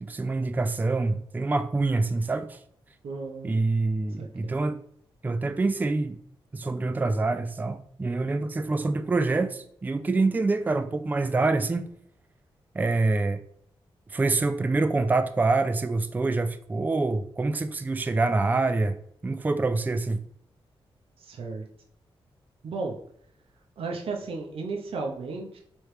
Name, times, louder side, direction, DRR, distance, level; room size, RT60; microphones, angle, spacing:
voice 1, 0.0-2.6 3.4-4.8 5.2-6.2 6.5-11.9 12.7-13.4 14.1-19.0 19.2-20.2, right 3 dB, 20° right, 0.3 m, -26 dB
voice 2, 3.0-3.6 4.2-4.6 21.2-21.6 22.6-23.0 23.8-25.6, right 4 dB, 75° right, 0.7 m, -34 dB
3.2 x 3.1 x 4.7 m
wide cardioid pair, 100°, 10 cm